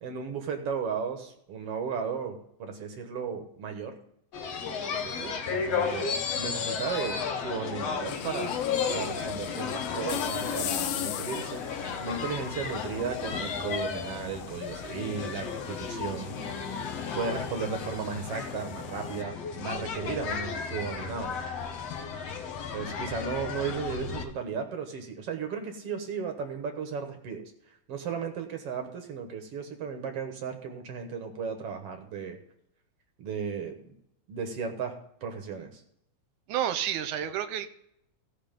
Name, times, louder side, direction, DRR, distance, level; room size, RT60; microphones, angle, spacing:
voice 1, 0.0-4.0 4.8-8.6 8.9-16.4 16.7-16.9 17.1-21.4 22.7-27.5 27.9-32.4 33.2-34.0 34.3-35.0 35.2-35.8, right 6 dB, 60° right, 5 dB, 1.9 m, -35 dB
sound 1, 4.3-24.2, left 6 dB, 60° left, 2.1 m, -34 dB
sound 2, 8.1-19.2, left 14 dB, 85° left, 2.2 m, -41 dB
voice 2, 36.5-37.7, right 10 dB, 80° right, 11 dB, 2.1 m, -30 dB
16.5 x 5.8 x 5.2 m, 0.75 s
omnidirectional pair, 3.6 m